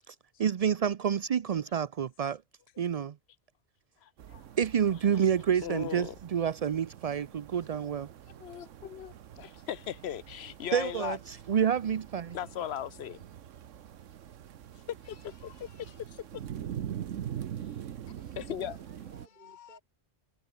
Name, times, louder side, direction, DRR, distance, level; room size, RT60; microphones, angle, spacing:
voice 1, 0.1-2.4 2.8-3.1 4.6-8.1 10.7-12.4, right 8 dB, 55° right, 0.4 m, -29 dB
voice 2, 4.0-4.4 5.6-6.2 8.4-11.2 12.3-13.2 15.0-16.4 18.4-18.8 19.4-19.8, left 10 dB, 65° left, 0.8 m, -39 dB
sound 1, 4.2-19.3, right 10 dB, 80° right, 1.2 m, -44 dB
voice 3, 18.2-19.8, right 2 dB, 35° right, 5.0 m, -59 dB
omnidirectional pair, 1.3 m